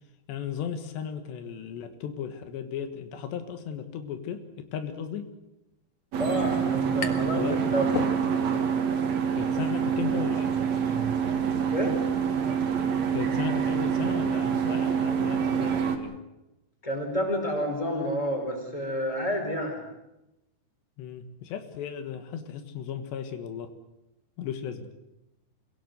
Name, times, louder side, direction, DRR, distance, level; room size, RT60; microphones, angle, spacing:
voice 1, 0.3-5.3 7.4-7.6 9.4-10.5 13.1-16.2 21.0-23.7 24.4-24.9, left 8 dB, 85° left, 8 dB, 3.8 m, -35 dB
sound 1, 5.9-6.0 6.2-7.4 7.7-8.7, left 6 dB, 55° left, 2.7 m, -35 dB
sound 2, 6.1-16.0, right 7 dB, 50° right, 2.5 m, -26 dB
voice 2, 6.2-8.1 11.7-12.0 16.8-19.8, equal, 10° left, 2 dB, 4.8 m, -29 dB
26.5 x 17.0 x 8.0 m, 0.95 s
omnidirectional pair, 4.8 m